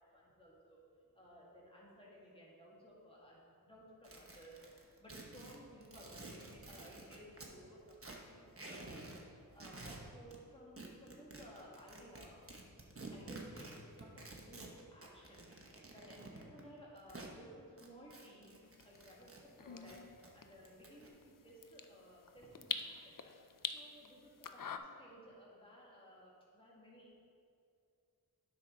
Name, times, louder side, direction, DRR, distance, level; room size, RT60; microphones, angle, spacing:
voice 1, 0.0-4.6 5.0-12.4 13.1-23.3 23.7-27.2, equal, 15° left, -5 dB, 2.0 m, -57 dB
sound 1, 4.0-7.5 7.9-9.2 9.5-10.4 10.8-17.3 17.8-19.4 19.7-21.1, right 2 dB, 35° right, 1.1 m, -51 dB
sound 2, 18.6-24.8, left 6 dB, 60° left, 0.5 m, -47 dB
9.6 x 6.2 x 3.9 m, 2.4 s
wide cardioid pair, 40°, 38 cm